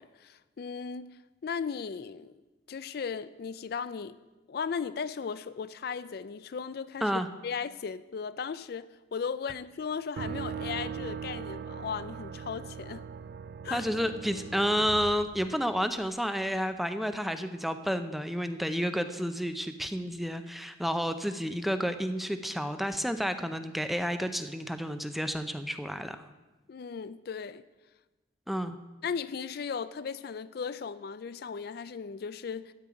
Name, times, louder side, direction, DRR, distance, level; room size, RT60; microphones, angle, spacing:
voice 1, 0.0-2.4 2.7-4.2 4.5-13.1 13.6-13.9 26.7-27.6 29.0-32.7, left 6 dB, 55° left, 0.4 m, -37 dB
sound 1, 10.2-16.0, right 7 dB, 55° right, 0.3 m, -40 dB
voice 2, 13.7-26.2 28.5-28.8, equal, ahead, 0.6 m, -30 dB
13.0 x 5.5 x 8.9 m
head